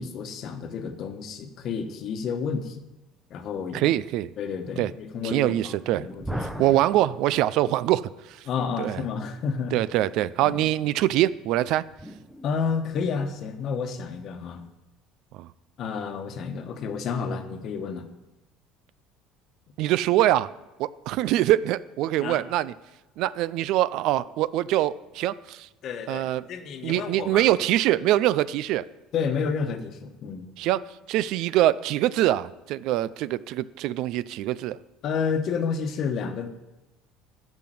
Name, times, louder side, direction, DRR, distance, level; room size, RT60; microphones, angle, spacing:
voice 1, 0.0-2.8 3.3-3.9 4.4-6.8 8.5-9.9 10.4-10.7 12.4-14.6 15.8-18.1 22.2-22.4 25.8-27.4 29.1-30.5 35.0-36.5, left 5 dB, 50° left, 7 dB, 1.2 m, -30 dB
voice 2, 3.7-4.3 4.8-4.9 5.2-6.1 6.6-8.0 8.3-8.4 8.8-9.0 9.7-11.8 15.3-15.5 19.8-20.5 20.8-22.7 23.2-25.7 26.1-26.5 26.8-28.8 30.6-30.8 31.1-34.8, right 14 dB, 65° right, 18 dB, 0.4 m, -24 dB
sound 1, 6.1-8.0 11.0-13.3, right 1 dB, ahead, 0.7 m, -39 dB
11.0 x 5.8 x 7.7 m, 1.0 s
cardioid pair, 135°, 0 cm